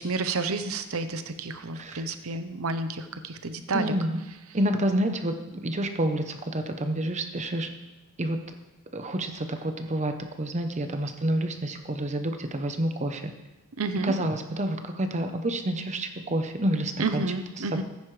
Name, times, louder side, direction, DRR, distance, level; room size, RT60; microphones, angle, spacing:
voice 1, 0.0-3.9 13.8-14.1 17.0-17.8, right 3 dB, 65° right, 10 dB, 0.8 m, -30 dB
voice 2, 3.7-4.2 4.5-7.7 8.2-8.4 8.9-13.3 14.0-17.2 17.6-17.8, right 1 dB, 30° right, 7 dB, 0.8 m, -28 dB
14.5 x 9.6 x 3.3 m, 1.1 s
head